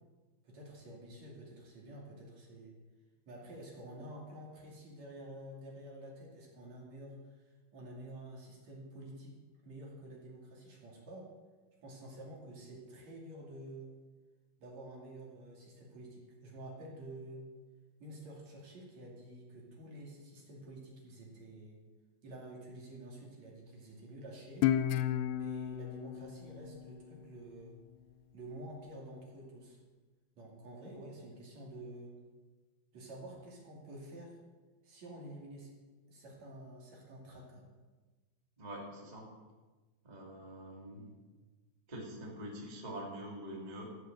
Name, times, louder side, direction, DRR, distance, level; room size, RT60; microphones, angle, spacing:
voice 1, 0.4-2.7 3.2-9.3 9.6-11.3 11.8-13.9 14.6-17.5 18.0-21.8 22.2-24.7 25.3-27.8 28.3-29.8 30.4-32.2 32.9-34.3 34.8-35.7 36.1-37.7, right 1 dB, 45° right, -2 dB, 3.1 m, -49 dB
Guitar, 24.6-27.8, left 11 dB, 90° left, 2.4 m, -34 dB
voice 2, 38.6-39.3 40.0-41.1 41.9-43.9, right 1 dB, 20° right, -2 dB, 1.0 m, -45 dB
14.5 x 7.8 x 7.6 m, 1.3 s
omnidirectional pair, 5.5 m